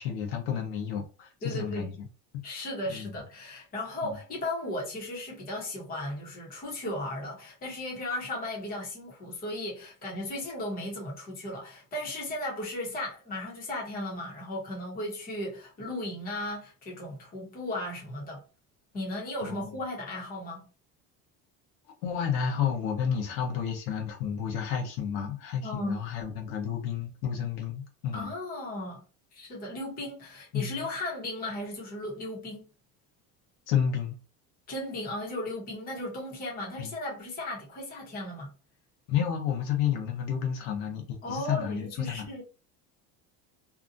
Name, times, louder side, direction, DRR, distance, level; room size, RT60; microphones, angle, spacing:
voice 1, 0.0-2.1 2.3-2.5 2.9-3.1 4.0-4.2 19.4-19.8 22.0-28.3 30.5-30.9 33.7-34.2 36.8-36.9 39.1-42.3, left 8 dB, 85° left, 1.0 m, -31 dB
voice 2, 1.4-1.9 2.4-18.4 18.9-20.6 25.6-26.0 28.1-29.0 29.3-32.7 34.7-38.6 41.2-42.4, left 1 dB, 25° left, 1.1 m, -36 dB
2.8 x 2.4 x 2.5 m
cardioid pair, 170°, 34 cm